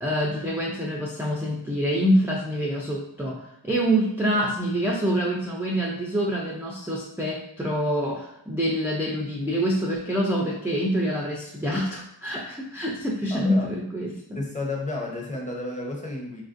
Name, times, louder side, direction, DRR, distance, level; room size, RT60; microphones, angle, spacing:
voice 1, 0.0-14.2, equal, 5° right, -3 dB, 0.3 m, -26 dB
voice 2, 13.3-13.7 14.3-16.4, left 2 dB, 15° left, -2 dB, 0.7 m, -32 dB
3.2 x 2.5 x 2.5 m, 0.76 s
wide cardioid pair, 60°, 48 cm